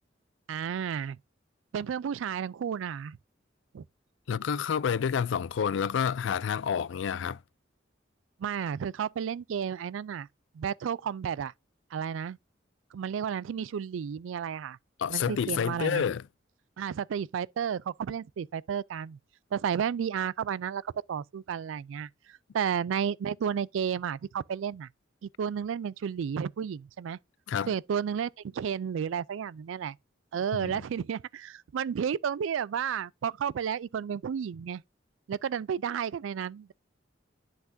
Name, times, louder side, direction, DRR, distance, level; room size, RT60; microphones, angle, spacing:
voice 1, 0.5-1.2 1.7-3.2 3.7-3.8 8.4-10.3 10.5-11.5 11.9-12.4 12.9-14.8 15.1-16.0 16.8-19.2 19.5-24.9 25.2-27.2 27.7-30.0 30.3-34.8 35.3-36.7, right 7 dB, 85° right, 0.3 m, -32 dB
voice 2, 4.3-7.4 15.0-16.2 27.5-27.7 30.5-30.8, left 7 dB, 75° left, 0.4 m, -29 dB
10.5 x 5.8 x 2.6 m
head